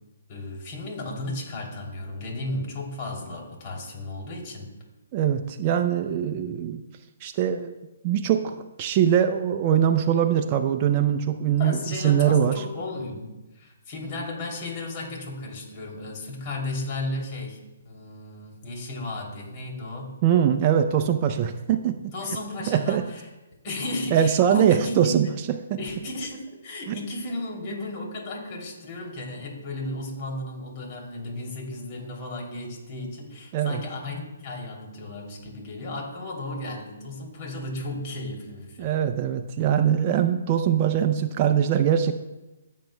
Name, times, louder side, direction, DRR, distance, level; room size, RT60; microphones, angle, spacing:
voice 1, 0.3-4.7 11.6-20.2 22.1-23.3 23.6-25.3 25.8-39.0, left 2 dB, 35° left, 0 dB, 3.0 m, -34 dB
voice 2, 5.1-6.8 7.2-7.7 8.0-12.6 20.2-22.1 22.7-23.0 24.1-25.3 25.7-25.8 26.9-27.0 33.5-33.8 38.8-42.1, right 9 dB, 35° right, 6 dB, 0.5 m, -22 dB
15.5 x 7.4 x 2.3 m, 1.1 s
hypercardioid pair, 140°, 0 cm